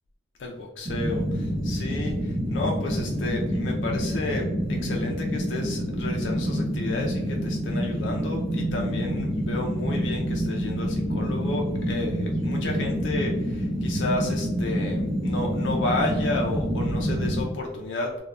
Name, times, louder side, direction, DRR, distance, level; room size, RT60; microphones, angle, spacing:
voice 1, 0.4-18.2, left 2 dB, 70° left, 0 dB, 0.4 m, -32 dB
sound 1, 0.8-17.4, equal, 30° right, 0.6 m, -27 dB
3.0 x 2.1 x 2.4 m, 1.0 s
head